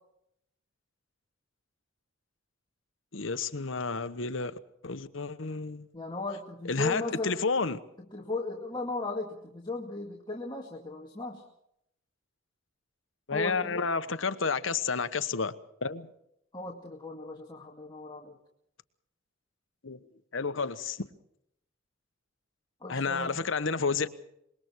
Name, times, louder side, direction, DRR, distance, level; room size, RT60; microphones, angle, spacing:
voice 1, 3.1-4.5 4.8-5.9 6.7-7.8 13.3-15.5 15.8-16.1 19.8-20.0 20.3-21.1 22.9-24.1, left 4 dB, 75° left, 1.1 m, -30 dB
voice 2, 5.9-7.6 8.1-11.4 13.3-13.9 16.5-18.4 22.8-23.5, left 3 dB, 25° left, 2.3 m, -36 dB
25.5 x 22.0 x 4.7 m
head